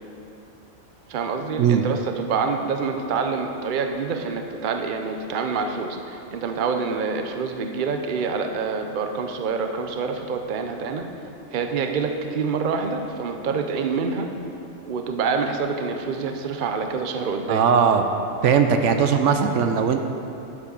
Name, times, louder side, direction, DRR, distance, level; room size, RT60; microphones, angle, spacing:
voice 1, 1.1-11.1 11.5-14.3 14.9-17.7, right 5 dB, 50° right, 5 dB, 0.8 m, -26 dB
voice 2, 17.5-18.0 18.4-20.0, right 7 dB, 75° right, 6 dB, 1.0 m, -19 dB
11.5 x 7.3 x 5.3 m, 2.8 s
omnidirectional pair, 1.3 m